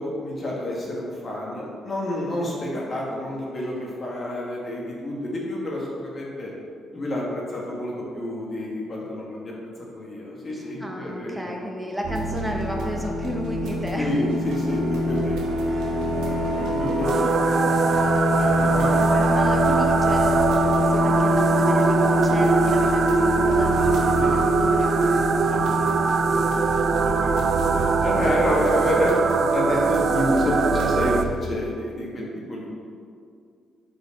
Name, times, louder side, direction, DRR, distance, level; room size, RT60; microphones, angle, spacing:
voice 1, 0.0-6.5 6.9-9.5 9.8-11.4 14.0-15.4 16.6-17.6 18.4-19.0 24.1-24.5 24.8-32.7, left 1 dB, 40° left, -3 dB, 1.5 m, -29 dB
voice 2, 10.5-14.3 15.7-17.0 18.9-25.3, equal, 5° right, 0 dB, 0.8 m, -33 dB
sound 1, 12.0-31.3, left 1 dB, 90° right, 0.9 m, -25 dB
sound 2, 17.0-31.2, right 5 dB, 55° right, 0.3 m, -22 dB
5.0 x 4.8 x 4.1 m, 2.3 s
cardioid pair, 90°, 0 cm